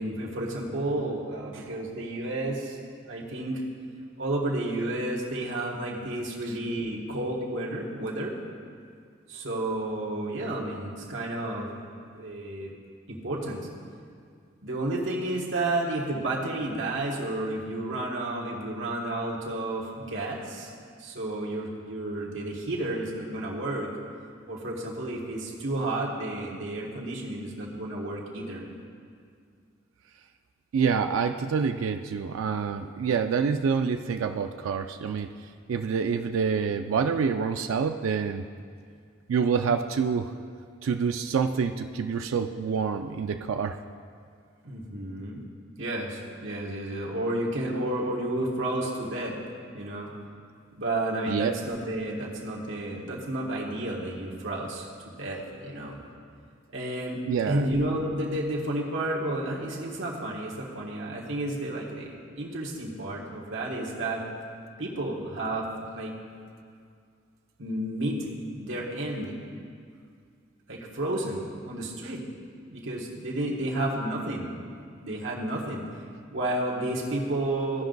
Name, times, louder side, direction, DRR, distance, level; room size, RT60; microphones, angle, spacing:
voice 1, 0.0-2.8 3.1-3.6 4.2-8.4 9.3-11.7 12.1-12.7 13.1-13.6 14.6-20.7 21.0-23.9 24.5-28.7 44.6-45.4 45.8-49.4 49.7-50.1 50.8-56.0 56.7-64.2 64.8-65.7 65.9-66.1 67.6-68.3 68.5-69.4 70.7-72.2 72.6-74.5 75.0-75.8 76.3-77.8, right 1 dB, 70° right, -3 dB, 1.4 m, -31 dB
voice 2, 30.7-35.3 35.7-38.4 39.3-40.3 40.8-43.8 51.3-51.6 57.2-57.7, right 6 dB, 90° right, 6 dB, 0.3 m, -27 dB
15.0 x 5.2 x 3.9 m, 2.2 s
head